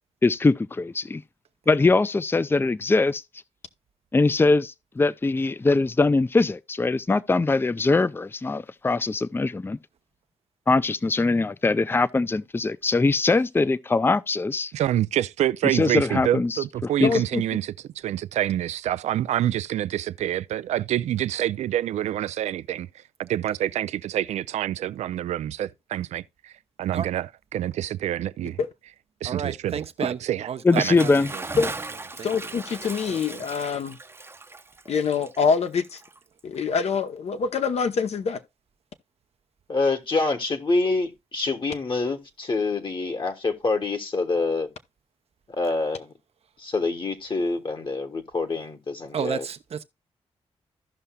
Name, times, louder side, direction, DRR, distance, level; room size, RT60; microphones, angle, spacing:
voice 1, 0.2-1.2 1.7-3.2 4.1-9.8 10.7-14.7 15.7-16.6 17.0-17.2 30.6-31.3, left 3 dB, 20° left, 0.4 m, -22 dB
voice 2, 14.7-26.5 26.8-27.3 27.5-28.6 29.2-30.5 30.8-30.9, right 12 dB, 90° right, 0.4 m, -27 dB
voice 3, 17.0-17.4 31.6-31.7 32.2-34.0 34.9-36.0 36.4-38.4, left 5 dB, 70° left, 0.9 m, -25 dB
voice 4, 29.2-31.5 32.1-32.3 33.1-33.4 49.1-49.8, right 7 dB, 65° right, 0.7 m, -33 dB
Bathtub (filling or washing) / Splash splatter, 30.6-36.6, right 3 dB, 20° right, 0.7 m, -38 dB
voice 5, 39.7-44.7 45.5-46.1 46.6-49.4, left 3 dB, 45° left, 1.3 m, -26 dB
15.0 x 5.6 x 2.3 m
cardioid pair, 65°, 11 cm